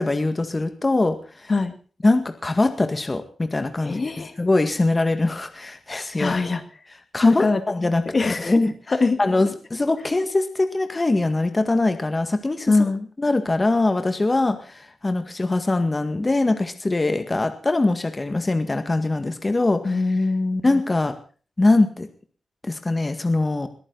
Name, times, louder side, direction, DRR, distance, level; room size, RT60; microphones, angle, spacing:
voice 1, 0.0-1.5 2.0-4.0 4.4-6.4 7.1-8.0 8.4-8.7 9.2-12.7 13.2-20.0 20.6-21.2 21.6-22.1 22.6-23.7, left 2 dB, 25° left, 8 dB, 1.9 m, -22 dB
voice 2, 3.8-4.3 6.1-6.6 7.2-7.6 8.1-8.5 8.9-9.2 12.7-13.1 19.8-20.6, left 3 dB, 40° left, 9 dB, 2.0 m, -22 dB
21.5 x 14.0 x 4.1 m, 0.40 s
wide cardioid pair, 90°, 0 cm